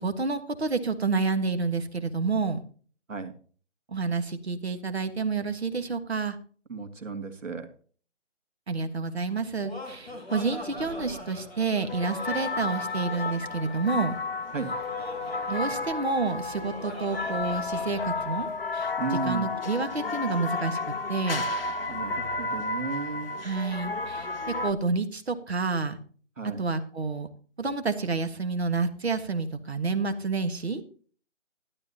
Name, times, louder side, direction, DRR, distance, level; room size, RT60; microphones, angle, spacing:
voice 1, 0.0-2.6 3.9-6.3 8.7-14.1 15.5-18.5 18.7-18.9 19.2-20.8 21.1-21.4 23.4-26.0 26.4-27.3 27.6-30.8, right 4 dB, 55° right, 9 dB, 1.6 m, -29 dB
voice 2, 6.7-7.7 14.5-14.7 19.0-19.5 21.9-23.3 26.4-26.6, right 4 dB, 85° right, 7 dB, 2.5 m, -34 dB
Laughter, 9.3-18.5, left 1 dB, ahead, 1.3 m, -42 dB
church in guimaraes, 11.9-24.7, left 3 dB, 50° left, 0.8 m, -32 dB
12.5 x 12.0 x 2.9 m, 0.42 s
hypercardioid pair, 180°, 37 cm